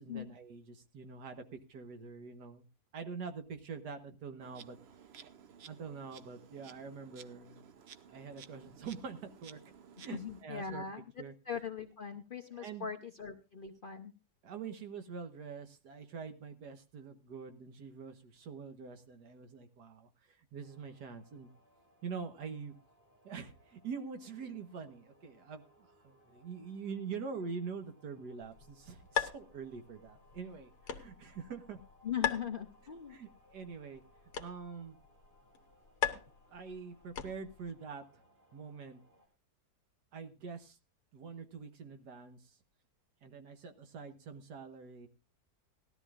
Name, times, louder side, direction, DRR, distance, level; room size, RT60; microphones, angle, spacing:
voice 1, 0.0-2.7 2.9-4.8 5.7-7.6 8.1-9.6 10.0-10.8 11.2-11.3 12.5-12.9 14.4-21.5 22.0-22.8 23.2-31.8 33.1-34.0 34.4-35.0 36.1-36.2 36.5-38.0 38.5-39.0 40.1-40.8 41.1-42.6 43.2-45.1, right 5 dB, 80° right, 7 dB, 1.8 m, -45 dB
Insect, 4.4-10.4, right 7 dB, 55° right, 0.7 m, -55 dB
voice 2, 10.0-11.0 11.5-14.1 32.0-33.2, left 7 dB, 45° left, 4 dB, 0.7 m, -40 dB
sound 1, 20.6-39.3, equal, 35° right, 3.8 m, -67 dB
sound 2, 28.4-37.7, left 8 dB, 80° left, 1.6 m, -41 dB
18.5 x 13.0 x 2.4 m, 0.31 s
omnidirectional pair, 1.7 m